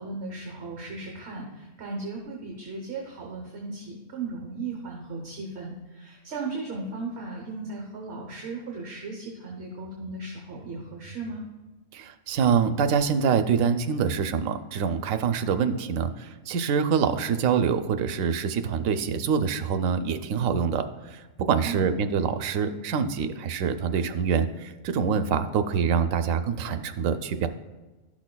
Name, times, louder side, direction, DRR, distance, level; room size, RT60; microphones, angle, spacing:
voice 1, 0.0-11.4 21.6-21.9, right 3 dB, 60° right, 0 dB, 1.2 m, -36 dB
voice 2, 11.9-20.8 21.1-27.5, right 6 dB, 85° right, 9 dB, 1.0 m, -25 dB
11.5 x 6.2 x 2.2 m, 1.2 s
omnidirectional pair, 1.4 m